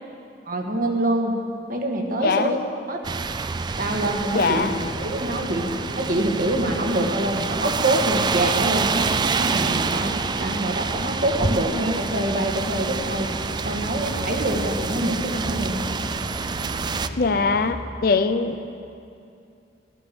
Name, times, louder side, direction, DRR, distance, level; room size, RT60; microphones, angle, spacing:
voice 1, 0.5-1.3 1.7-2.6 2.9-3.0 3.8-4.7 4.9-5.7 6.0-10.1 10.4-13.3 13.6-15.9, right 1 dB, 50° right, 2 dB, 1.6 m, -25 dB
voice 2, 2.2-2.6 4.3-4.8 17.2-18.7, left 4 dB, 60° left, 10 dB, 0.6 m, -22 dB
sound 1, 3.0-17.1, right 4 dB, 25° right, 0.3 m, -27 dB
sound 2, 4.5-17.7, left 1 dB, 85° left, 1.3 m, -37 dB
13.5 x 12.0 x 6.9 m, 2.6 s
head